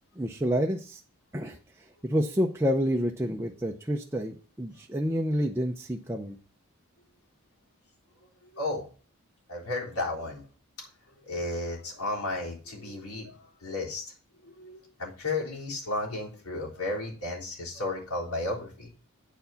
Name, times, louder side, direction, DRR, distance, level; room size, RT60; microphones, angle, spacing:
voice 1, 0.2-1.0 1.3-1.6 2.0-6.4, equal, 10° right, 1 dB, 0.6 m, -28 dB
voice 2, 8.5-8.9 9.5-10.4 11.2-14.0 14.4-18.9, left 2 dB, 85° left, -4 dB, 3.8 m, -33 dB
9.0 x 4.7 x 6.9 m, 0.37 s
head